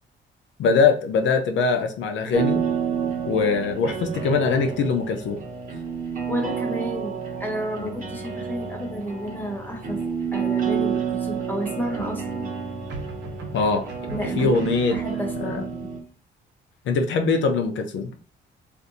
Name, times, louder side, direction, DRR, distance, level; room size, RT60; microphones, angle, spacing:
voice 1, 0.6-2.6 3.2-5.4 13.5-13.8 14.4-15.0 15.4-15.6 16.9-18.1, left 4 dB, 70° left, 5 dB, 0.5 m, -22 dB
sound 1, 2.3-16.0, right 6 dB, 40° right, 1.2 m, -29 dB
voice 2, 6.3-10.0 10.3-12.5 14.1-14.5 14.9-15.9, equal, 10° left, 2 dB, 1.1 m, -31 dB
sound 2, 10.2-10.8 12.9-15.6, right 4 dB, 65° right, 0.9 m, -39 dB
2.5 x 2.5 x 4.0 m, 0.39 s
cardioid pair, 90°, 20 cm